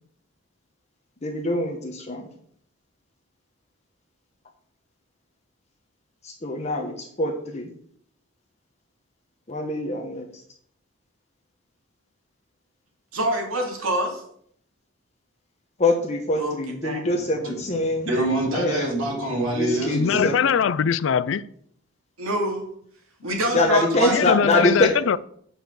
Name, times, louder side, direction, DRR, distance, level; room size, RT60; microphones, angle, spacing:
voice 1, 1.2-2.3 6.2-7.7 9.5-10.2 15.8-18.1 18.5-18.9 19.5-20.6 23.5-24.9, left 2 dB, 30° left, 0.9 m, -24 dB
voice 2, 13.1-14.2 16.4-17.0 22.2-22.7 23.2-24.2, right 1 dB, 85° right, 2.3 m, -26 dB
voice 3, 18.0-20.3, right 2 dB, 70° right, 3.3 m, -25 dB
voice 4, 19.9-21.5 24.1-25.2, left 7 dB, 60° left, 0.4 m, -21 dB
5.9 x 5.3 x 6.2 m
head